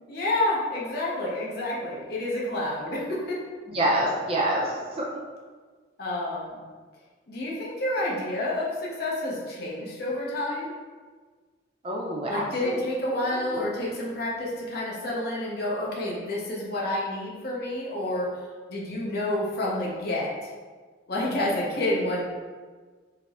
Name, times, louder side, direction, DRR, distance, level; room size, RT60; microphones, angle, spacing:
voice 1, 0.1-3.4 6.0-6.6 7.3-10.7 12.3-18.3 18.7-20.3 21.1-22.2, left 1 dB, 50° left, -4 dB, 0.7 m, -29 dB
voice 2, 3.7-5.2 11.8-12.9 13.3-13.7, right 1 dB, 30° right, -3 dB, 0.4 m, -27 dB
4.1 x 2.0 x 2.4 m, 1.5 s
head